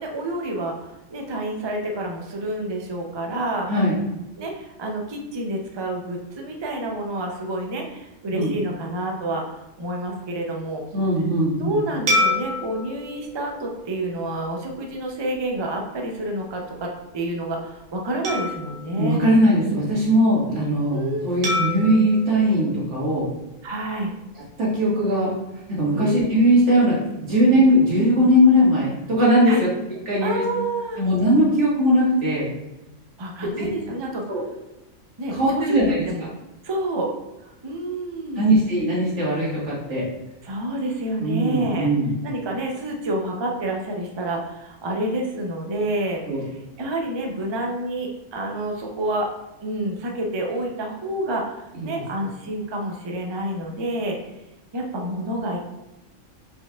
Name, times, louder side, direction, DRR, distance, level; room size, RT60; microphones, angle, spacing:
voice 1, 0.0-3.7 4.4-10.8 11.6-19.2 20.9-21.2 23.6-24.1 25.9-26.2 29.5-29.6 30.2-31.0 33.2-34.2 35.2-36.3 36.6-37.1 37.4-38.6 40.4-41.9 42.2-49.3 49.6-54.2 54.7-55.6, right 1 dB, 45° right, 1 dB, 0.3 m, -28 dB
voice 2, 10.9-11.8 18.9-23.3 24.6-25.3 25.7-29.7 30.1-30.5 31.0-32.5 33.6-33.7 34.3-34.4 35.3-36.0 38.4-40.1 41.2-42.1 46.3-46.4 51.8-52.0, equal, 60° right, -7 dB, 1.9 m, -19 dB
sound 1, 12.1-14.7 15.3-15.5 18.2-20.0 21.4-23.7, left 2 dB, 80° right, 1.4 m, -29 dB
4.6 x 4.5 x 2.3 m, 0.95 s
omnidirectional pair, 1.4 m